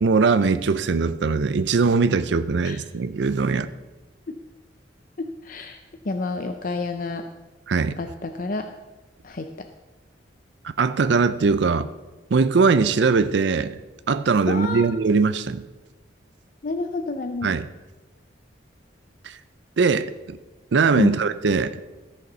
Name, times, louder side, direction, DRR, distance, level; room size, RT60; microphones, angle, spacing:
voice 1, 0.0-3.7 7.7-8.0 10.8-11.9 12.3-13.8 14.1-15.6 17.4-17.7 19.2-19.4 19.8-20.4 20.7-21.7, right 4 dB, 65° right, 12 dB, 0.5 m, -21 dB
voice 2, 5.2-5.8 6.0-7.2 8.0-8.7 9.2-9.7 14.5-14.9 16.6-17.5 21.0-21.2, left 2 dB, 45° left, 7 dB, 0.5 m, -29 dB
14.0 x 6.7 x 5.5 m, 1.2 s
head